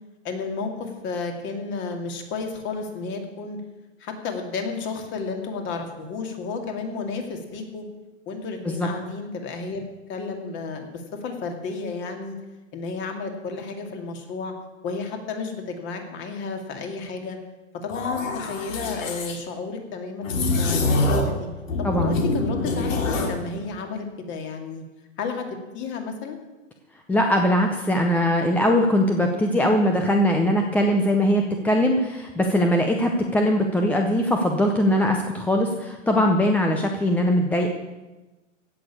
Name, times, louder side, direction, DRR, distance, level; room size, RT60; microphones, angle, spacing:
voice 1, 0.2-3.6 4.0-7.8 8.3-9.8 10.1-12.4 12.7-14.5 14.8-17.4 17.8-21.5 21.8-24.8 25.2-25.5 25.7-26.4, left 4 dB, 30° left, 4 dB, 2.3 m, -32 dB
sound 1, 17.9-19.4 20.2-21.4 21.7-23.4, left 2 dB, 75° left, 3.1 m, -25 dB
voice 2, 21.8-22.2 27.1-37.7, equal, 5° left, 3 dB, 0.6 m, -21 dB
16.5 x 6.8 x 8.5 m, 1.1 s
hypercardioid pair, 140°, 39 cm